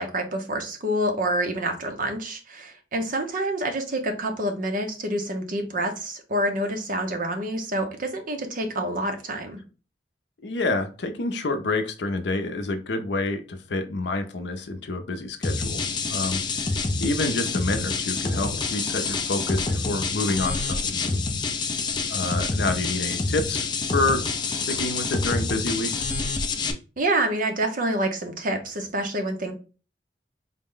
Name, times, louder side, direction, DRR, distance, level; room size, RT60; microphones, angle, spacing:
voice 1, 0.0-9.6 27.0-29.5, right 1 dB, 50° right, 5 dB, 0.8 m, -27 dB
voice 2, 10.4-21.2 22.1-26.1, left 2 dB, 75° left, 8 dB, 0.6 m, -28 dB
sound 1, 15.4-26.7, left 4 dB, 25° left, 0.5 m, -27 dB
4.0 x 2.1 x 3.7 m, 0.35 s
head